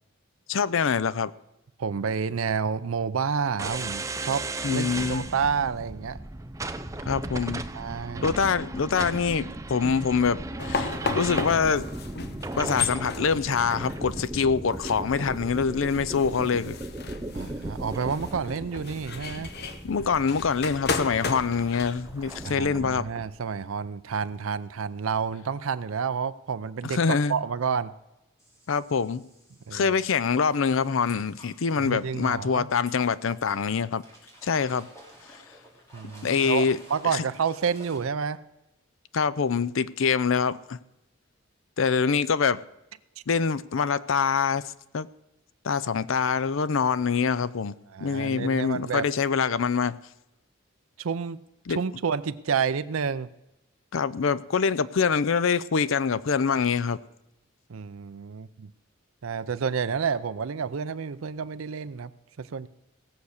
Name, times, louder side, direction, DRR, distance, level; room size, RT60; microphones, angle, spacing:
voice 1, 0.5-1.3 4.6-5.3 7.1-7.6 8.2-11.9 12.6-16.8 19.8-23.1 26.8-27.4 28.7-29.2 29.7-34.0 34.4-34.9 36.2-36.8 37.1-37.2 39.1-40.8 41.8-42.6 43.3-44.6 44.9-45.1 45.6-47.8 48.0-50.0 51.7-51.8 53.9-57.0, left 5 dB, 70° left, 17 dB, 0.5 m, -25 dB
voice 2, 1.8-6.2 7.7-8.4 17.2-19.5 22.4-27.9 29.7-30.0 31.8-32.7 35.9-38.4 47.9-49.0 51.0-51.4 51.7-53.3 57.7-58.7 59.2-62.1 62.4-62.7, right 6 dB, 80° right, 12 dB, 0.5 m, -29 dB
sound 1, 3.6-23.3, right 2 dB, 15° right, 0.5 m, -36 dB
sound 2, 10.6-22.5, left 4 dB, 50° left, 0.9 m, -34 dB
sound 3, 28.4-38.0, equal, 15° left, 3.1 m, -52 dB
17.5 x 7.0 x 6.5 m, 0.91 s
head